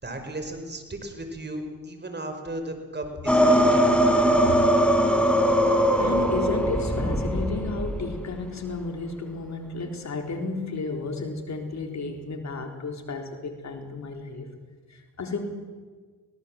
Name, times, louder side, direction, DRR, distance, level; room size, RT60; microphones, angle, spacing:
voice 1, 0.0-3.9, right 1 dB, 30° right, 6 dB, 5.4 m, -35 dB
sound 1, 3.3-8.1, equal, 5° left, 4.3 m, -21 dB
voice 2, 6.0-14.5 14.9-15.4, left 4 dB, 55° left, 4 dB, 4.0 m, -32 dB
23.0 x 18.0 x 7.7 m, 1.5 s
supercardioid pair, 60°, 34 cm